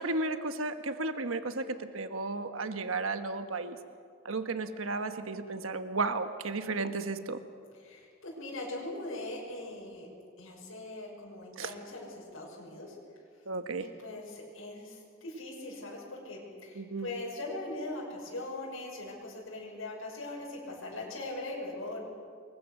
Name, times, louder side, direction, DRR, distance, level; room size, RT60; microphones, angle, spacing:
voice 1, 0.0-3.8 4.2-7.4 11.6-11.7 13.5-13.9 16.7-17.1, right 3 dB, 90° right, 8 dB, 1.2 m, -34 dB
voice 2, 7.8-10.1 10.4-13.0 13.7-22.0, left 2 dB, 90° left, -4 dB, 6.3 m, -41 dB
27.5 x 22.5 x 6.6 m, 2.2 s
head